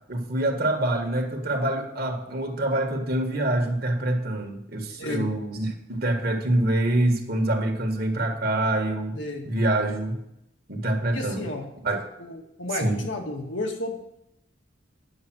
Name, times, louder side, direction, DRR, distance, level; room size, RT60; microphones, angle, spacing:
voice 1, 0.1-9.2 9.5-10.2 10.7-11.5 11.8-12.1 12.8-13.0, right 1 dB, 50° right, 4 dB, 1.6 m, -25 dB
voice 2, 9.2-9.5 11.1-11.7 12.2-14.2, left 2 dB, 80° left, 1 dB, 2.0 m, -32 dB
10.5 x 7.0 x 6.2 m, 0.78 s
head